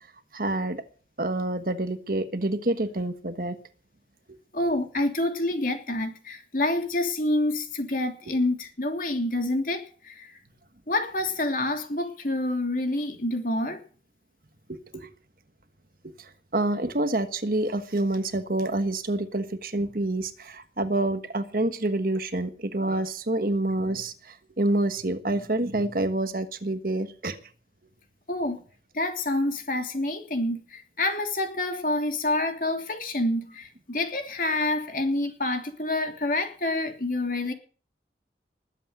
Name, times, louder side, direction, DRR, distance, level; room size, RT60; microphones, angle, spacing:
voice 1, 0.3-0.8 1.2-3.6 14.7-15.1 16.5-24.1 24.6-27.4, right 2 dB, 50° right, 1.4 m, -27 dB
voice 2, 4.5-10.3 10.9-13.8 28.3-28.6 28.9-37.5, left 2 dB, 50° left, 3.1 m, -27 dB
20.5 x 8.4 x 7.9 m
head